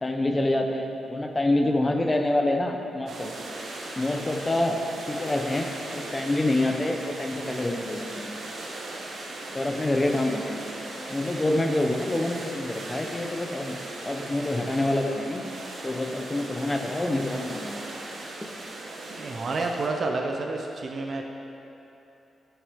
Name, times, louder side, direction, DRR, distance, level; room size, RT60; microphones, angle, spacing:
voice 1, 0.0-3.3 4.0-4.8 5.1-8.3 9.5-10.6 11.1-13.8 14.0-15.5 15.8-17.8 18.4-18.6, left 1 dB, 20° left, 3 dB, 0.7 m, -27 dB
sound 1, 3.1-19.9, right 2 dB, 70° right, 1.2 m, -38 dB
voice 2, 19.2-21.2, right 3 dB, 50° right, 2 dB, 0.6 m, -29 dB
11.0 x 5.9 x 3.6 m, 2.9 s
cardioid pair, 110°, 0 cm